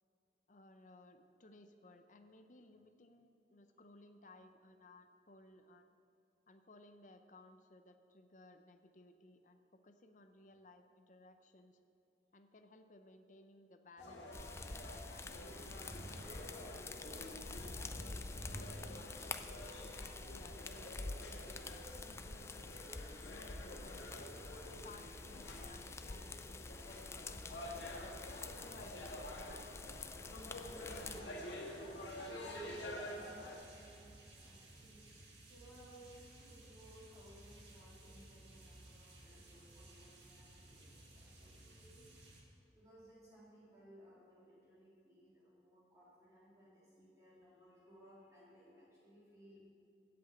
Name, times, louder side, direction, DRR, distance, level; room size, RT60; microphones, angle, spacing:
voice 1, 0.5-5.9 6.5-11.8 12.3-14.4 14.8-16.6 17.1-22.8 23.2-24.4 24.7-28.2 28.6-30.4 30.9-31.6, left 2 dB, 45° left, 7 dB, 0.7 m, -61 dB
sound 1, 14.0-33.6, left 1 dB, 80° left, 1.7 m, -49 dB
sound 2, 14.3-31.2, left 3 dB, 15° left, 0.3 m, -48 dB
sound 3, 30.6-42.4, right 1 dB, 75° right, 1.8 m, -58 dB
voice 2, 32.9-35.1 35.5-42.1 42.7-49.6, equal, 20° right, -10 dB, 2.8 m, -62 dB
8.3 x 7.9 x 8.2 m, 2.7 s
head